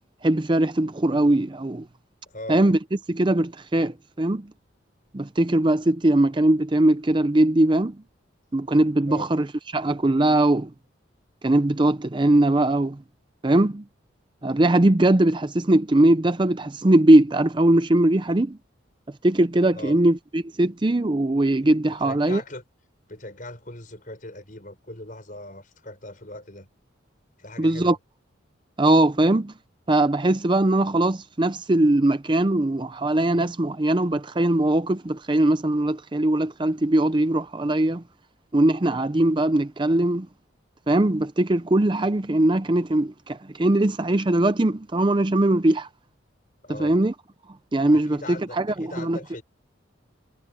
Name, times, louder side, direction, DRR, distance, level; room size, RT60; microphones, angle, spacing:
voice 1, 0.2-1.9 2.5-2.8 3.1-4.5 5.1-8.0 8.5-10.7 11.4-13.0 13.4-13.8 14.4-18.6 19.2-22.4 27.6-28.0 28.8-29.5 29.9-38.0 38.5-40.3 40.9-45.9 46.8-47.1 47.7-49.2, right 1 dB, 25° right, 0.5 m, -20 dB
voice 2, 2.3-2.6 9.1-9.3 19.7-20.0 22.0-22.6 23.1-26.7 27.4-28.0 46.6-47.0 47.9-49.4, left 1 dB, 40° left, 6.0 m, -39 dB
head